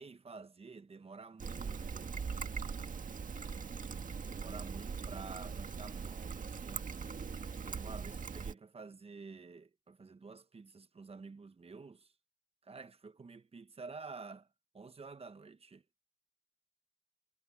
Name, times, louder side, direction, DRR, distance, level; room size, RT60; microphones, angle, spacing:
voice 1, 0.0-2.2 4.3-6.9 7.6-12.1 12.6-14.5 14.7-15.8, right 4 dB, 40° right, 1.1 m, -50 dB
Trickle dribble, 1.4-8.5, right 5 dB, 55° right, 1.8 m, -41 dB
cardioid pair, 90°, 16 cm